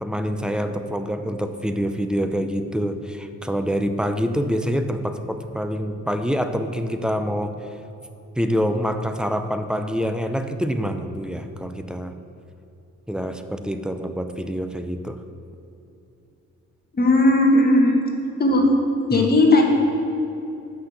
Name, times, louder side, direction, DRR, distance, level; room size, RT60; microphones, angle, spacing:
voice 1, 0.0-7.5 8.4-12.1 13.1-15.2 19.1-19.3, equal, 5° right, 8 dB, 0.6 m, -26 dB
voice 2, 16.9-18.0 18.4-18.7 19.1-19.6, left 2 dB, 30° left, 1 dB, 1.6 m, -16 dB
8.5 x 5.8 x 6.7 m, 2.8 s
cardioid pair, 90°, 30 cm